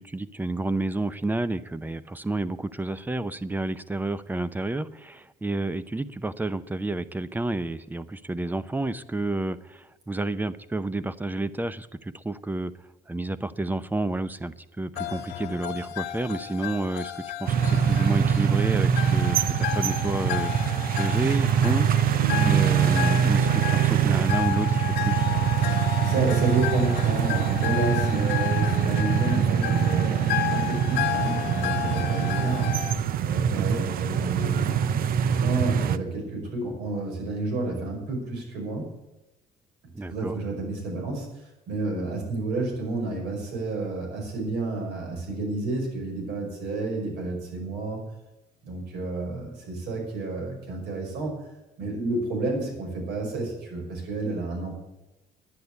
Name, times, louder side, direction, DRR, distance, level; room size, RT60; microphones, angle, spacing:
voice 1, 0.0-12.7 13.1-21.9 22.4-25.3 33.5-33.8 39.9-40.4, right 2 dB, 10° right, 15 dB, 0.6 m, -30 dB
sound 1, 14.9-32.9, left 14 dB, 90° left, 1.6 m, -32 dB
sound 2, 17.5-36.0, right 9 dB, 60° right, 0.7 m, -24 dB
voice 2, 22.2-22.7 26.0-30.2 30.5-32.7 33.2-34.8 35.2-38.9 40.1-41.3 41.7-48.0 48.6-51.3 51.8-54.7, right 2 dB, 80° right, 1 dB, 5.5 m, -30 dB
10.5 x 9.6 x 8.3 m, 0.98 s
cardioid pair, 110°, 17 cm